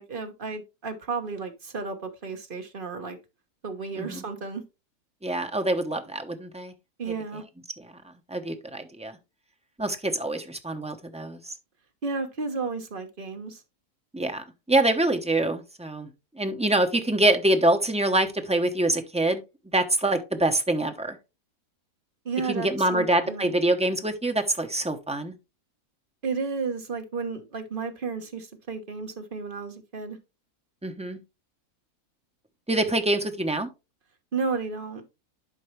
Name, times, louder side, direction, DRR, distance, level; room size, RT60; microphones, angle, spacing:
voice 1, 0.0-3.2 3.6-4.6 7.0-7.4 12.0-13.6 22.2-23.5 26.2-30.2 34.3-35.0, right 4 dB, 35° right, 1.3 m, -32 dB
voice 2, 5.2-6.7 7.8-9.2 9.8-11.5 14.1-16.1 16.3-19.4 19.7-21.2 22.5-25.3 30.8-31.2 32.7-33.7, right 1 dB, 5° right, 0.6 m, -25 dB
11.5 x 4.6 x 3.2 m
omnidirectional pair, 1.7 m